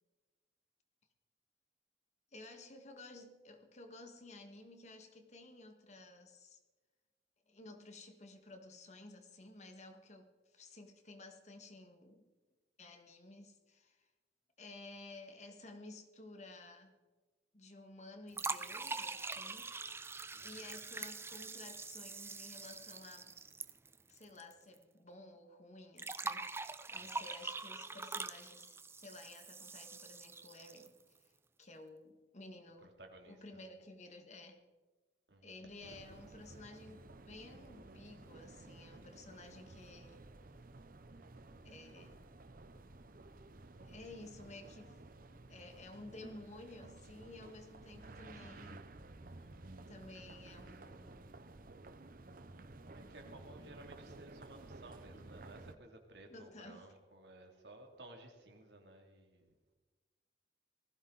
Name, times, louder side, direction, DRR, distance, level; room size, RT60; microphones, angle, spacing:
voice 1, 2.3-6.6 7.5-12.2 12.8-14.1 14.6-17.0 17.5-19.7 20.3-23.4 24.1-26.5 26.9-31.3 31.6-33.0 33.2-34.6 35.4-40.2 41.6-42.2 43.8-45.0 45.3-48.9 49.9-51.2 54.5-54.6 56.3-57.0, left 2 dB, 40° left, 5 dB, 1.8 m, -54 dB
sound 1, 18.3-24.5 24.8-24.9 26.0-31.0, right 3 dB, 15° right, 0.5 m, -44 dB
voice 2, 27.0-27.3 32.8-33.6 35.3-35.7 49.4-49.8 52.9-59.5, right 2 dB, 75° right, 3 dB, 2.9 m, -57 dB
sound 2, 35.8-55.8, right 2 dB, 55° right, 0.8 m, -54 dB
20.0 x 15.5 x 4.1 m, 1.3 s
head